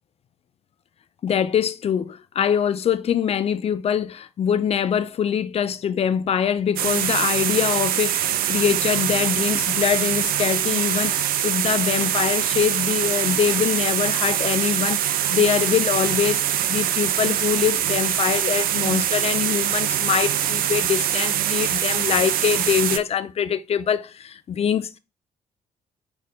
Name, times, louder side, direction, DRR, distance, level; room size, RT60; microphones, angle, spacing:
voice 1, 1.2-15.0 15.3-16.4 16.7-25.0, left 8 dB, 30° left, 0.4 m, -23 dB
sound 1, 6.8-23.0, right 11 dB, 50° right, 0.4 m, -23 dB
4.0 x 2.4 x 3.8 m
figure-of-eight pair, 40°, 20 cm